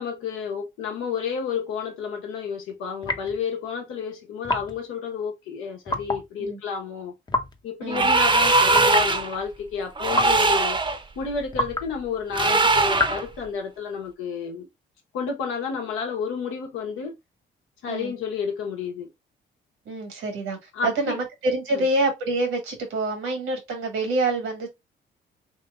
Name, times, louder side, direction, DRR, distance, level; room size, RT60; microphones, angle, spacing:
voice 1, 0.0-7.1 7.6-10.8 11.2-14.7 15.1-17.2 17.8-19.1 20.7-21.2 21.7-21.9, left 6 dB, 80° left, 1.0 m, -31 dB
sound 1, 3.0-3.4 4.4-4.8 5.9-6.3 7.3-7.6 8.7-9.1 10.1-10.5 11.5-11.9 12.9-13.3, left 2 dB, 20° left, 0.6 m, -27 dB
sound 2, 7.9-9.3 10.0-11.0 12.3-13.2, right 3 dB, 25° right, 0.7 m, -20 dB
voice 2, 19.8-24.7, right 2 dB, 75° right, 1.3 m, -26 dB
3.1 x 2.8 x 2.4 m
supercardioid pair, 55°, 21 cm